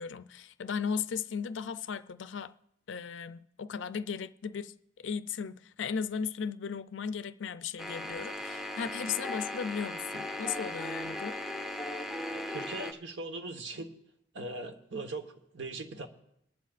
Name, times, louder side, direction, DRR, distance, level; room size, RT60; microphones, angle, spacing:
voice 1, 0.0-2.5 2.9-11.4, left 6 dB, 75° left, 0.4 m, -36 dB
sound 1, 7.8-12.9, left 1 dB, ahead, 0.6 m, -37 dB
voice 2, 12.3-13.9 14.3-16.1, right 2 dB, 70° right, 1.3 m, -40 dB
23.0 x 11.5 x 2.5 m
head